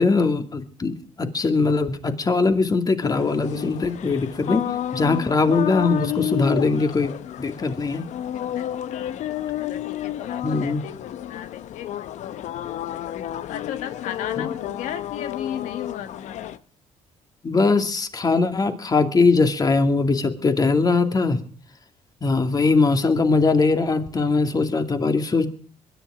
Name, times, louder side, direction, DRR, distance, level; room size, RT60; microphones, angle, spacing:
voice 1, 0.0-4.6 4.9-7.1 7.4-8.1 10.4-10.8 17.4-21.4 22.2-25.5, left 3 dB, 30° left, 7 dB, 2.4 m, -21 dB
sound 1, 3.0-16.6, left 11 dB, 70° left, 0.8 m, -31 dB
voice 2, 8.5-9.2 9.6-13.2 13.5-16.5, left 10 dB, 90° left, 9 dB, 1.6 m, -35 dB
22.0 x 10.5 x 4.9 m, 0.44 s
cardioid pair, 95°, 12 cm